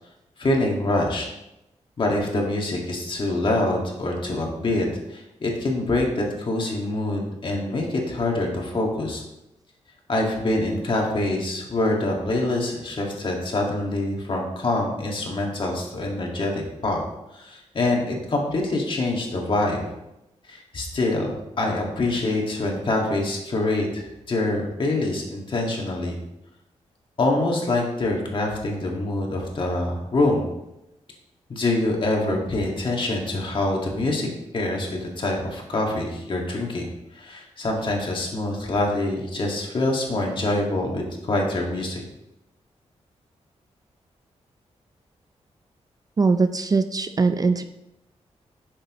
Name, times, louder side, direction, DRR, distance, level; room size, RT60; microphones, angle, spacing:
voice 1, 0.4-1.3 2.0-9.2 10.1-17.0 17.3-19.9 20.5-26.2 27.2-30.5 31.5-34.3 34.5-36.9 37.1-42.0, left 2 dB, 45° left, 0 dB, 1.8 m, -25 dB
voice 2, 46.2-47.6, right 4 dB, 30° right, 9 dB, 0.4 m, -21 dB
10.0 x 6.7 x 3.1 m, 0.89 s
wide cardioid pair, 125°, 12 cm